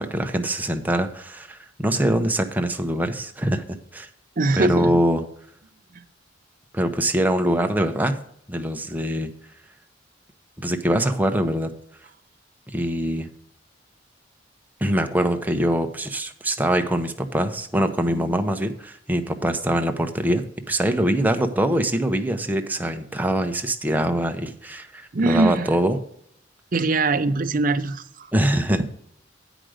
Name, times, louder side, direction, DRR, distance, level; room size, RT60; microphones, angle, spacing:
voice 1, 0.0-3.6 3.9-4.1 4.6-5.2 6.7-8.2 8.5-9.3 10.6-11.7 12.7-13.3 14.8-26.0 28.3-28.8, right 1 dB, 10° right, 6 dB, 0.7 m, -23 dB
voice 2, 4.4-4.9 5.9-6.0 25.1-25.7 26.7-28.3, right 3 dB, 45° right, 8 dB, 0.6 m, -22 dB
9.0 x 5.0 x 6.4 m, 0.69 s
head